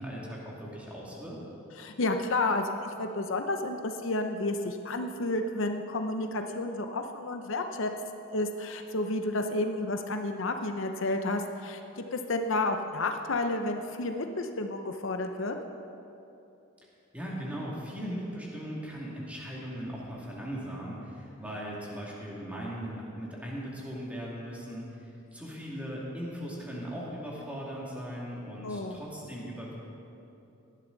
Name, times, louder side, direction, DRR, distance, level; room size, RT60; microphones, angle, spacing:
voice 1, 0.0-1.4 17.1-24.9 25.3-29.7, equal, 5° right, -5 dB, 2.4 m, -38 dB
voice 2, 1.8-7.9 8.3-15.5 28.6-29.0, left 2 dB, 65° left, 5 dB, 0.7 m, -31 dB
17.5 x 11.5 x 4.0 m, 2.8 s
head